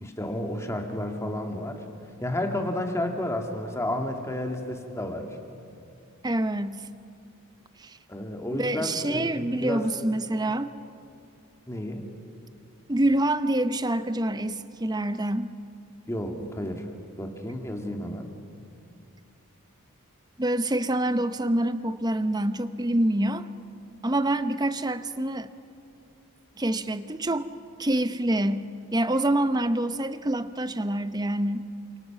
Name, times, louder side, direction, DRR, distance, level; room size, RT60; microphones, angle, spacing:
voice 1, 0.0-1.9 2.2-5.4 8.1-9.3 9.6-9.9 11.7-12.1 16.1-16.9 17.2-18.3, left 1 dB, 15° left, 3 dB, 2.1 m, -31 dB
voice 2, 6.2-6.9 7.8-8.0 8.5-10.7 12.9-15.5 20.4-23.5 24.0-25.5 26.6-27.5 27.8-31.7, right 1 dB, 20° right, 12 dB, 0.7 m, -26 dB
29.0 x 26.5 x 5.9 m, 2.6 s
head